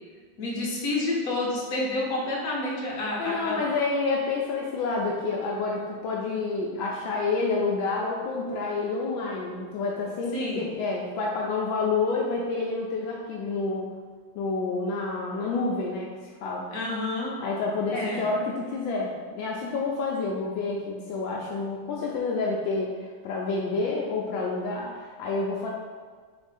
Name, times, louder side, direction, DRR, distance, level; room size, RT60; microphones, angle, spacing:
voice 1, 0.4-3.6 10.3-10.6 16.7-17.3 17.9-18.2, left 2 dB, 50° left, -4 dB, 1.2 m, -29 dB
voice 2, 3.2-13.9 14.3-16.7 17.4-25.7, left 3 dB, 80° left, -2 dB, 1.3 m, -29 dB
3.6 x 3.4 x 4.0 m, 1.5 s
omnidirectional pair, 2.2 m